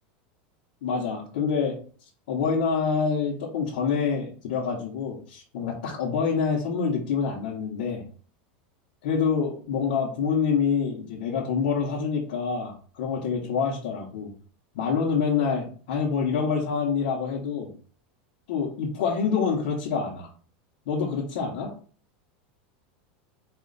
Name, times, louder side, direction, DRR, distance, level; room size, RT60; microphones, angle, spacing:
voice 1, 0.8-1.8 2.3-8.0 9.0-14.3 14.7-17.7 18.5-20.3 20.9-21.7, left 6 dB, 75° left, -4 dB, 1.0 m, -26 dB
4.3 x 2.4 x 3.9 m, 0.42 s
supercardioid pair, 150°, 5 cm